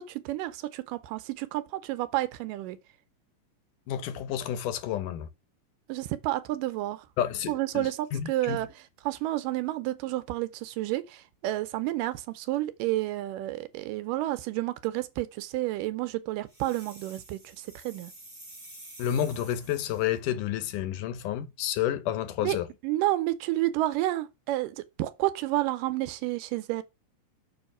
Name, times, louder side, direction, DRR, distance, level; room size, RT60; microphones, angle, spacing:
voice 1, 0.0-2.8 5.9-7.1 7.5-8.7 9.0-18.1 22.4-22.6 22.8-26.8, right 16 dB, 85° right, 2.3 m, -30 dB
voice 2, 3.9-5.3 7.2-8.6 19.0-22.7, left 10 dB, 75° left, 2.3 m, -30 dB
sound 1, 16.5-20.2, right 1 dB, 25° right, 0.6 m, -49 dB
7.2 x 3.0 x 6.0 m
omnidirectional pair, 3.9 m